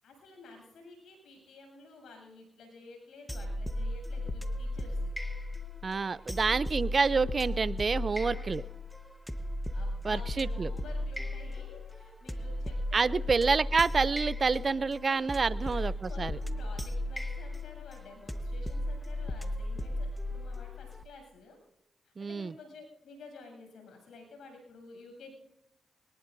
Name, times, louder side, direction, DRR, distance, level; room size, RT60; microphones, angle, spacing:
voice 1, 0.0-5.1 6.1-6.7 8.2-8.7 9.7-13.5 15.1-15.3 15.6-21.6 22.0-25.3, left 3 dB, 80° left, 2 dB, 7.9 m, -52 dB
sound 1, 3.3-21.0, left 1 dB, 5° left, 1.2 m, -35 dB
voice 2, 5.8-8.6 10.0-10.7 12.9-16.4 22.2-22.5, right 4 dB, 45° right, 18 dB, 0.5 m, -28 dB
22.5 x 19.5 x 2.7 m, 0.87 s
cardioid pair, 60°, 0 cm